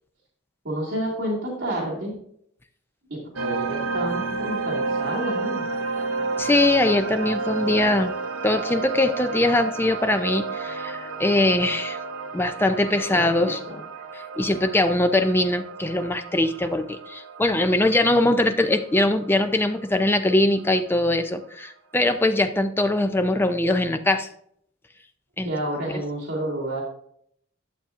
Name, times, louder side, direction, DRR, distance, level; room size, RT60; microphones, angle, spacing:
voice 1, 0.6-2.2 3.1-5.6 13.1-13.2 13.6-13.8 25.4-26.8, right 1 dB, 60° right, -7 dB, 2.2 m, -29 dB
sound 1, 3.4-20.3, right 4 dB, 80° right, 0.7 m, -31 dB
voice 2, 6.4-8.1 8.4-12.0 12.3-13.6 14.1-24.3 25.4-25.5, left 1 dB, 10° left, 8 dB, 0.4 m, -22 dB
11.5 x 6.9 x 2.5 m, 0.67 s
head